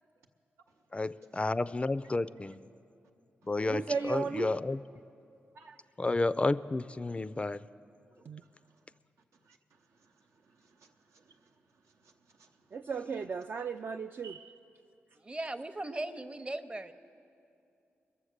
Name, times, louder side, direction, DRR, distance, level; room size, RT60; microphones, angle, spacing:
voice 1, 0.9-2.6 3.4-4.8 6.0-7.7, left 2 dB, 25° left, 15 dB, 0.3 m, -31 dB
voice 2, 3.7-4.6 8.3-8.4 12.7-14.6, right 5 dB, 50° right, 5 dB, 0.3 m, -35 dB
voice 3, 5.5-6.0 8.1-9.0 9.3-12.8, right 3 dB, 85° right, 1 dB, 0.8 m, -64 dB
voice 4, 15.2-16.9, right 2 dB, 25° right, 10 dB, 0.7 m, -38 dB
21.5 x 7.1 x 6.6 m, 2.6 s
supercardioid pair, 50°, 5 cm